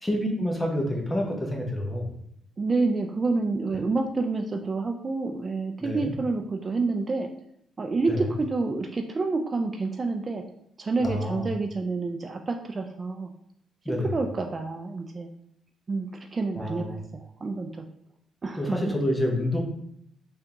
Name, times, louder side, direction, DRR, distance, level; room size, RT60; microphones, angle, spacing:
voice 1, 0.0-2.1 5.8-6.1 8.1-8.3 11.0-11.5 13.8-14.1 16.5-17.0 18.6-19.6, left 1 dB, 10° left, 1 dB, 0.9 m, -28 dB
voice 2, 2.6-7.3 7.8-10.4 10.8-13.3 13.9-15.3 15.9-17.8 18.4-18.9, right 3 dB, 35° right, 4 dB, 0.3 m, -28 dB
3.5 x 3.4 x 2.9 m, 0.72 s
cardioid pair, 90°, 0 cm